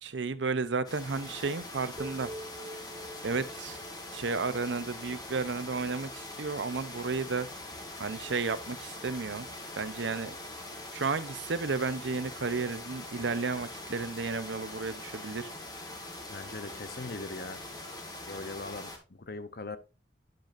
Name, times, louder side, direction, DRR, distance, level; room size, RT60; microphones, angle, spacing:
voice 1, 0.0-2.3 3.2-3.8 4.1-7.5 8.0-9.5 9.8-10.3 10.9-15.5, right 4 dB, 90° right, 0.7 m, -33 dB
sound 1, 0.8-19.0, left 2 dB, 25° left, 1.6 m, -43 dB
sound 2, 2.0-6.1, right 1 dB, 25° right, 0.6 m, -47 dB
voice 2, 16.3-17.6 18.3-19.8, left 3 dB, 55° left, 0.8 m, -40 dB
10.0 x 6.4 x 2.6 m
head